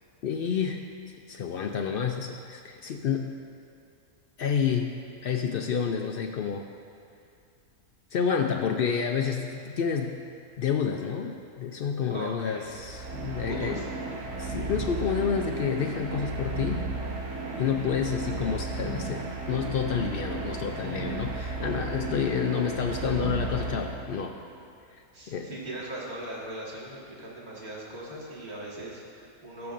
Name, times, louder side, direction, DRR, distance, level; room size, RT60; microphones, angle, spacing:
voice 1, 0.2-0.8 1.3-3.3 4.4-5.0 5.2-6.7 8.1-10.2 10.6-13.8 14.4-16.9 17.6-24.4 24.9-25.5, left 7 dB, 90° left, 4 dB, 0.5 m, -29 dB
voice 2, 12.1-12.6 13.4-13.8 22.2-22.5 25.1-29.7, right 1 dB, 30° right, -5 dB, 1.8 m, -39 dB
sound 1, 12.6-24.4, right 3 dB, 65° right, 1.4 m, -34 dB
19.5 x 6.9 x 2.5 m, 2.4 s
omnidirectional pair, 1.5 m